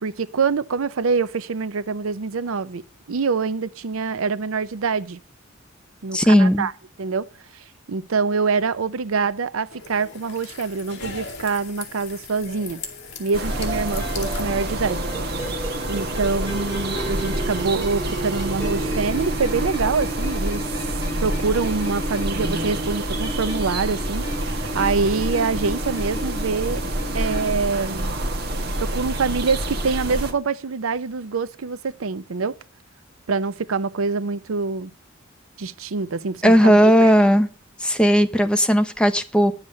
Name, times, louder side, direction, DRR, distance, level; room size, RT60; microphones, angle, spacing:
voice 1, 0.0-2.8 3.1-5.2 6.0-6.7 7.0-7.3 7.5-12.8 13.2-15.0 15.9-20.7 21.2-26.8 27.1-28.1 28.8-32.5 33.3-34.9 35.6-37.1, right 4 dB, 75° right, 0.6 m, -25 dB
voice 2, 6.1-6.7 36.4-37.5 37.8-39.5, equal, 5° left, 0.7 m, -16 dB
sound 1, 9.7-15.3, left 4 dB, 55° left, 2.4 m, -38 dB
sound 2, 13.3-30.3, right 1 dB, 50° right, 1.4 m, -27 dB
sound 3, 13.5-27.5, equal, 15° right, 7.9 m, -33 dB
10.5 x 7.3 x 6.4 m
head